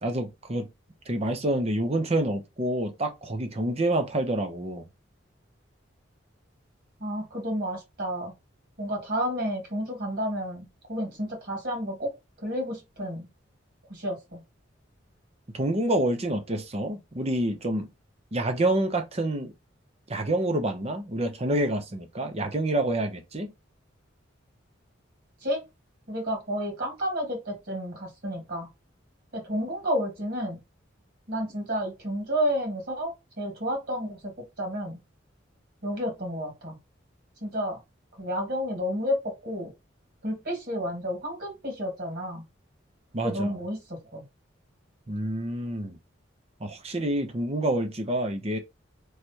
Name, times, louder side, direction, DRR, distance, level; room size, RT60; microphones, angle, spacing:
voice 1, 0.0-0.7 1.1-4.8 15.5-17.9 18.3-19.5 20.1-23.5 43.1-43.6 45.1-46.0 46.6-48.6, right 1 dB, 30° right, 0.7 m, -27 dB
voice 2, 7.0-8.3 8.8-12.1 12.4-13.3 13.9-14.4 25.4-25.6 26.1-28.7 29.3-30.6 31.3-35.0 35.8-36.8 37.4-37.8 38.2-39.2 39.4-39.7 40.2-42.4 43.2-44.2, equal, 55° right, 2.2 m, -31 dB
3.2 x 3.2 x 4.4 m
head